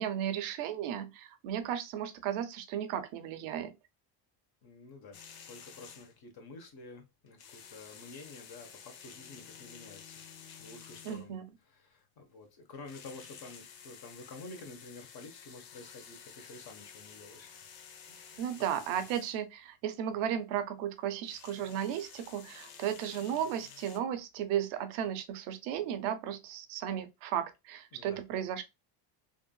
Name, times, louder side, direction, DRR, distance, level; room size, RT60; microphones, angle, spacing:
voice 1, 0.0-3.7 11.0-11.4 18.4-28.6, right 10 dB, 75° right, 0.8 m, -35 dB
voice 2, 4.6-5.2 5.5-11.4 11.7-17.6 18.1-18.7 18.9-19.0 27.9-28.2, left 3 dB, 50° left, 1.2 m, -50 dB
sound 1, 5.1-6.2 7.3-11.4 12.7-19.4 21.1-24.0, left 7 dB, 80° left, 0.9 m, -52 dB
3.5 x 2.5 x 2.2 m
supercardioid pair, 100°, 48 cm